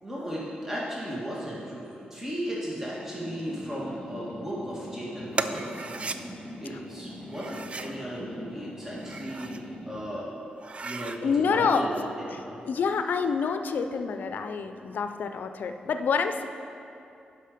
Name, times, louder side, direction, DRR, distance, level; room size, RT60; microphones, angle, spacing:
voice 1, 0.0-5.7 6.6-9.6 9.9-10.3 10.8-12.0 12.3-12.6, equal, 10° right, -7 dB, 1.8 m, -35 dB
sound 1, 3.1-10.2, equal, 25° left, 1.6 m, -42 dB
sound 2, 5.3-6.2 7.3-8.0 8.9-9.6 10.1-10.2 10.5-11.2, right 3 dB, 40° right, 0.4 m, -35 dB
voice 2, 11.2-11.9 12.7-16.5, left 5 dB, 70° left, 8 dB, 0.5 m, -27 dB
11.5 x 5.3 x 5.0 m, 2.6 s
cardioid pair, 85°, 3 cm